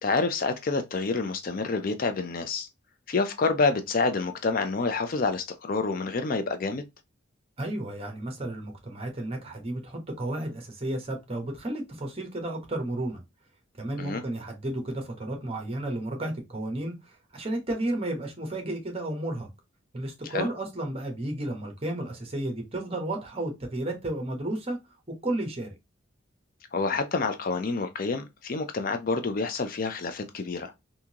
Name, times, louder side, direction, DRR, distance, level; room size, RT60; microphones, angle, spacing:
voice 1, 0.0-2.7 3.1-6.8 14.0-14.2 20.3-20.5 26.7-30.7, left 4 dB, 45° left, 0.4 m, -28 dB
voice 2, 7.6-13.2 13.8-19.5 19.9-24.8 25.2-25.7, right 1 dB, 30° right, 1.0 m, -32 dB
3.6 x 2.7 x 2.8 m
head